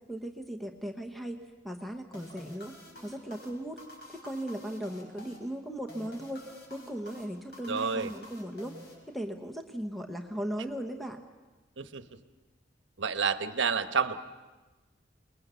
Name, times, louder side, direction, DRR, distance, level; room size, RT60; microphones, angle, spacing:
voice 1, 0.1-2.7 3.0-3.8 4.1-8.8 9.1-11.2, right 1 dB, ahead, 5 dB, 1.0 m, -37 dB
sound 1, 2.1-9.5, left 1 dB, 55° left, 5.2 m, -50 dB
voice 2, 7.7-8.1 11.8-12.0 13.0-14.2, right 5 dB, 85° right, 11 dB, 1.1 m, -29 dB
28.0 x 20.5 x 6.9 m, 1.2 s
head